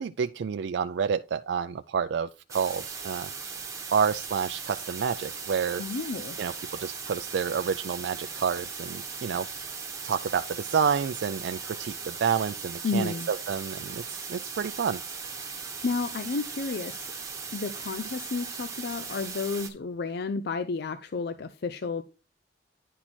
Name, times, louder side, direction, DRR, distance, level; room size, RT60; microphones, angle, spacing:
voice 1, 0.0-3.3 3.9-5.8 6.4-9.5 10.0-15.0, right 7 dB, 65° right, 0.3 m, -29 dB
sound 1, 2.5-19.7, right 5 dB, 15° right, 1.4 m, -38 dB
voice 2, 5.8-6.4 12.8-13.3 15.8-17.1 17.5-22.0, left 4 dB, 60° left, 0.5 m, -31 dB
10.0 x 4.4 x 4.3 m
head